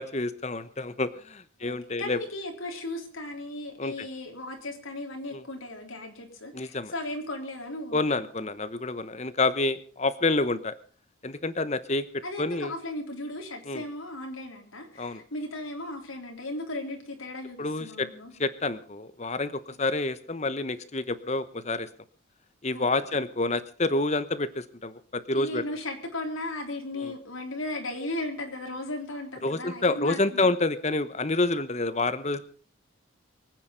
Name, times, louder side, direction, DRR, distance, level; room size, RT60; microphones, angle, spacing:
voice 1, 0.0-2.2 3.8-4.1 5.3-5.4 6.5-6.9 7.9-10.7 11.2-12.7 13.7-13.8 15.0-15.2 17.6-18.1 18.4-21.9 22.6-25.6 27.0-27.1 29.4-32.4, left 2 dB, 35° left, 14 dB, 1.0 m, -28 dB
voice 2, 1.6-8.0 12.2-18.3 22.7-23.2 25.3-30.5, left 1 dB, 85° left, 3 dB, 3.6 m, -36 dB
24.0 x 9.5 x 5.3 m, 0.41 s
head